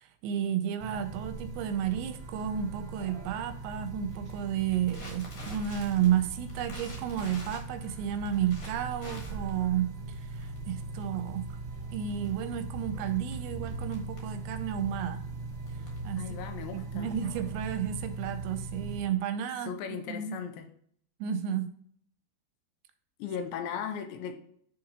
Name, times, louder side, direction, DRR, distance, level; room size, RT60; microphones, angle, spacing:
voice 1, 0.0-11.6 11.9-15.2 16.0-16.2 16.7-19.7 20.1-20.4 21.2-21.7, right 9 dB, 80° right, 7 dB, 2.8 m, -32 dB
sound 1, 0.8-19.0, right 3 dB, 40° right, 1.9 m, -40 dB
Livestock farm animals working animals, 1.6-16.5, left 3 dB, 15° left, 0.9 m, -54 dB
Crackle, 3.9-18.1, left 1 dB, 55° left, 2.4 m, -50 dB
voice 2, 16.2-17.1 19.7-20.7 23.2-24.4, left 7 dB, 85° left, 6 dB, 3.0 m, -37 dB
9.9 x 3.8 x 2.8 m, 0.64 s
omnidirectional pair, 5.3 m